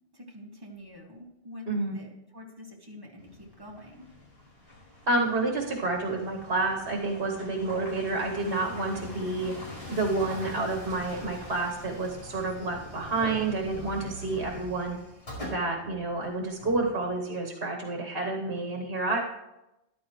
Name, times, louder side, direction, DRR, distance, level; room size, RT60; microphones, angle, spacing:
voice 1, 0.1-4.1, left 1 dB, 20° right, -2 dB, 2.0 m, -46 dB
voice 2, 1.7-2.0 5.1-9.5 9.9-15.0 15.4-19.2, right 3 dB, 65° right, 1 dB, 1.5 m, -29 dB
sound 1, 3.2-17.3, left 2 dB, 65° left, 5.5 m, -44 dB
13.5 x 11.5 x 3.1 m, 0.93 s
omnidirectional pair, 1.1 m